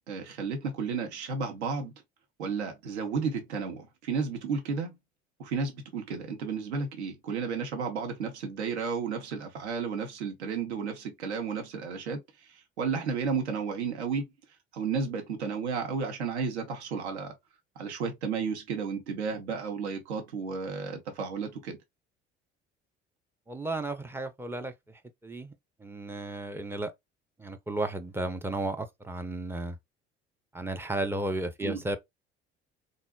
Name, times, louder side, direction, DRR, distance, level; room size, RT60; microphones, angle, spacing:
voice 1, 0.1-1.9 2.4-5.0 5.4-14.2 14.7-17.3 17.8-21.8 31.6-31.8, right 5 dB, 80° right, 0.7 m, -33 dB
voice 2, 23.5-26.9 27.4-29.8 30.5-32.0, right 2 dB, 5° right, 0.4 m, -34 dB
3.7 x 2.0 x 2.2 m
figure-of-eight pair, 55°, 33 cm